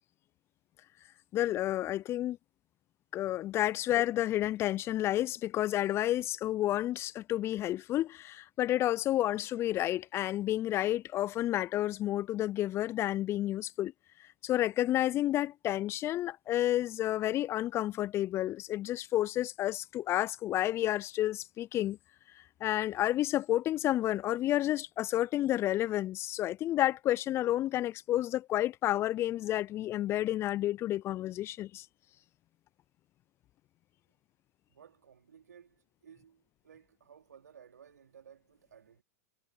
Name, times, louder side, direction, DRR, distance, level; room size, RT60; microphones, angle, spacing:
voice 1, 1.3-2.4 3.1-13.9 14.4-22.0 22.6-31.8, left 14 dB, 30° left, 0.3 m, -30 dB
voice 2, 34.7-39.0, right 8 dB, 80° right, 3.6 m, -57 dB
hypercardioid pair, 100°, 9 cm